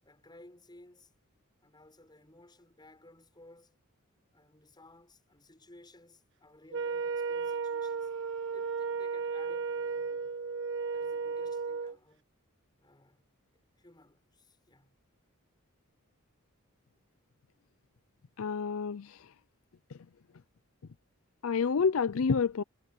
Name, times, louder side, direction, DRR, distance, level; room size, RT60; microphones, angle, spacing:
voice 1, 0.0-1.1 1.6-3.8 4.3-8.1 8.5-10.4 10.9-12.3 12.8-13.3 13.8-15.0, left 1 dB, 20° left, 6.1 m, -57 dB
Wind instrument woodwind instrument, 6.7-12.0, right 5 dB, 60° right, 1.4 m, -34 dB
voice 2, 18.4-19.3 21.4-22.6, left 5 dB, 65° left, 0.5 m, -29 dB
head